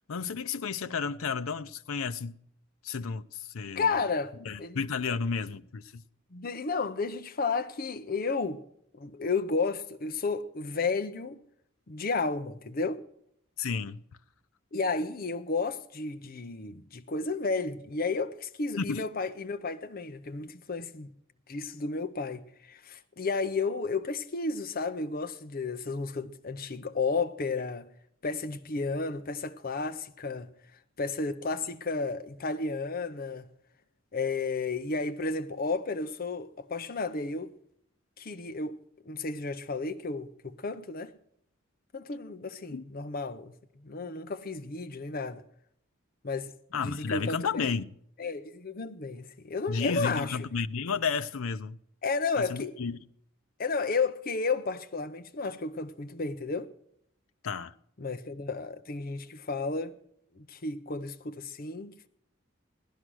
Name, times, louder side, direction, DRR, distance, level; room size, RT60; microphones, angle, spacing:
voice 1, 0.1-2.4 2.8-4.0 4.4-6.1 13.6-14.0 18.8-19.1 42.7-42.8 46.7-47.9 49.7-51.8 52.4-53.0 57.4-57.8, left 5 dB, 90° left, 0.6 m, -32 dB
voice 2, 3.8-4.8 6.3-8.6 9.0-11.4 11.9-13.0 14.7-21.1 21.5-27.9 28.2-30.5 31.0-33.5 34.1-37.5 38.2-38.8 39.1-41.1 41.9-43.5 43.8-45.4 46.2-46.5 46.8-47.7 48.2-50.4 52.0-52.7 53.6-56.7 58.0-59.9 60.4-62.1, left 4 dB, 45° left, 0.6 m, -32 dB
17.0 x 11.0 x 6.2 m
head